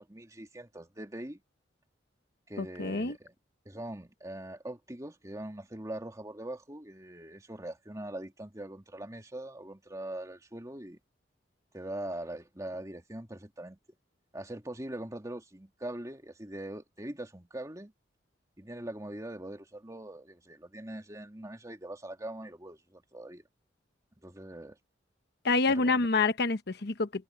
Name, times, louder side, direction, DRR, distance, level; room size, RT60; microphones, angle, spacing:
voice 1, 0.0-1.4 2.5-3.3 3.6-11.0 11.7-13.8 14.3-17.9 18.6-23.4 24.2-24.8 25.7-26.1, right 1 dB, 20° right, 2.6 m, -42 dB
voice 2, 2.6-3.2 25.4-27.2, left 3 dB, 60° left, 1.0 m, -27 dB
head